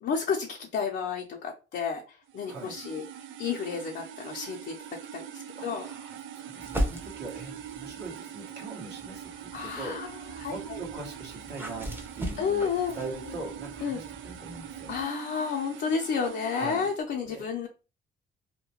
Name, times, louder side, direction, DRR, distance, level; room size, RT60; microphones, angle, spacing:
voice 1, 0.0-2.0 2.3-3.0 3.4-4.7 5.1-5.8 9.5-10.1 10.4-10.8 12.4-13.0 13.8-14.0 14.9-17.7, left 6 dB, 55° left, 0 dB, 0.6 m, -31 dB
sound 1, 2.3-17.0, right 10 dB, 75° right, 0.4 m, -43 dB
voice 2, 2.5-2.8 5.6-14.9 16.5-16.9 17.3-17.4, right 3 dB, 60° right, -1 dB, 1.3 m, -42 dB
sound 2, 6.6-8.2 8.8-15.1, equal, 10° right, 0.7 m, -38 dB
2.8 x 2.1 x 2.8 m, 0.32 s
cardioid pair, 90°, 20 cm